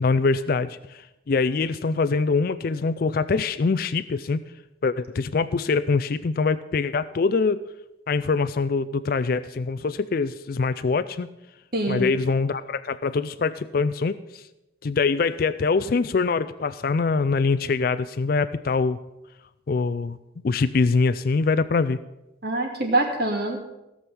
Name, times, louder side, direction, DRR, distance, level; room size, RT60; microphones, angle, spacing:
voice 1, 0.0-4.4 4.8-7.6 8.1-11.3 11.9-14.4 14.8-19.0 19.7-20.2 20.4-22.0, left 4 dB, 50° left, 13 dB, 0.4 m, -24 dB
voice 2, 11.7-12.1 22.4-23.6, right 2 dB, 50° right, 2 dB, 2.4 m, -24 dB
16.5 x 6.3 x 7.0 m, 0.94 s
head